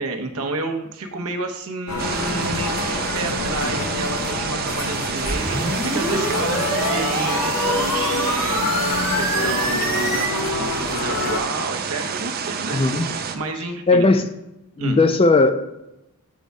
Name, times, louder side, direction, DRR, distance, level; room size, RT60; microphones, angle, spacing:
voice 1, 0.0-8.9 9.1-13.0 13.3-14.1 14.8-15.0, right 3 dB, 75° right, 5 dB, 0.8 m, -30 dB
sound 1, 1.9-11.4, left 2 dB, 75° left, 0.7 m, -27 dB
sound 2, 2.0-13.4, right 6 dB, 40° right, 0.5 m, -28 dB
sound 3, 5.3-10.3, right 1 dB, 10° right, 1.9 m, -26 dB
voice 2, 12.7-13.1 13.9-14.2 14.8-15.5, left 3 dB, 25° left, 9 dB, 0.4 m, -16 dB
7.4 x 3.5 x 5.3 m, 0.91 s
head